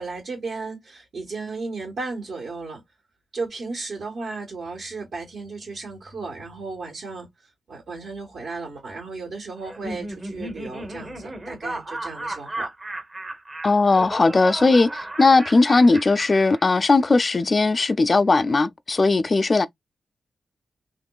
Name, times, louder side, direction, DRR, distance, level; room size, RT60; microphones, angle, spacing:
voice 1, 0.0-2.8 3.3-7.3 7.7-12.7, right 3 dB, 65° right, 1.4 m, -34 dB
Laughter, 9.6-17.1, right 1 dB, 25° right, 0.9 m, -35 dB
voice 2, 13.6-19.7, left 3 dB, 35° left, 0.3 m, -18 dB
3.5 x 3.0 x 2.3 m
wide cardioid pair, 125°, 0 cm